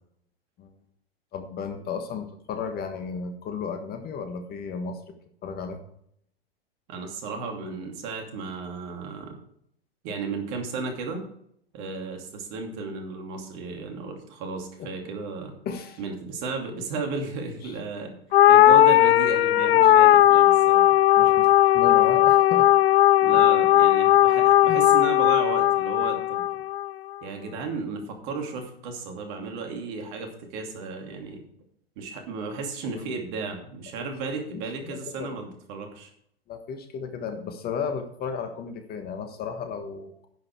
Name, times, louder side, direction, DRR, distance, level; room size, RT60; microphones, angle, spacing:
voice 1, 1.3-5.1 5.4-5.8 14.8-14.9 15.6-16.0 17.6-17.7 19.7-19.9 20.3-20.4 21.2-22.7 23.3-23.4 24.7-24.8 33.0-33.1 34.5-35.4 36.5-40.3, left 6 dB, 30° left, 7 dB, 1.5 m, -34 dB
voice 2, 6.9-9.4 10.0-11.2 11.7-15.5 16.0-18.1 18.5-20.9 23.2-26.4 27.2-31.4 32.0-36.1, right 4 dB, 50° right, 3 dB, 2.7 m, -34 dB
sound 1, 18.3-26.9, left 13 dB, 75° left, 0.5 m, -17 dB
11.0 x 7.7 x 4.7 m, 0.68 s
figure-of-eight pair, 100°, 31 cm